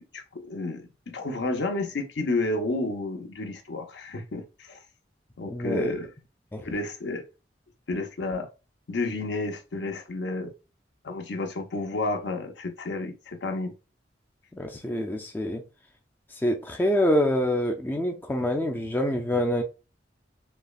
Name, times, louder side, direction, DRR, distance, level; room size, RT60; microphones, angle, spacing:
voice 1, 0.0-4.8 5.4-6.1 6.6-7.2 7.9-8.5 8.9-10.5 11.0-13.7, left 2 dB, 70° left, 0.7 m, -31 dB
voice 2, 5.5-6.0 6.5-6.6 14.5-15.6 16.4-19.6, left 1 dB, 10° left, 0.3 m, -26 dB
5.3 x 2.1 x 2.3 m
head